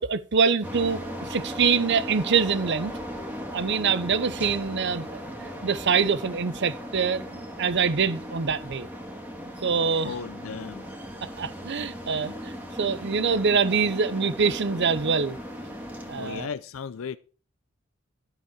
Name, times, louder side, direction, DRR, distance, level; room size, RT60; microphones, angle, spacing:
voice 1, 0.0-2.9 3.5-8.9 9.6-10.1 11.2-15.4 16.1-16.5, right 5 dB, 60° right, 0.7 m, -25 dB
sound 1, 0.6-16.5, equal, 10° right, 2.1 m, -37 dB
voice 2, 10.0-10.9 16.2-17.2, left 6 dB, 80° left, 0.5 m, -35 dB
12.0 x 7.2 x 4.7 m
head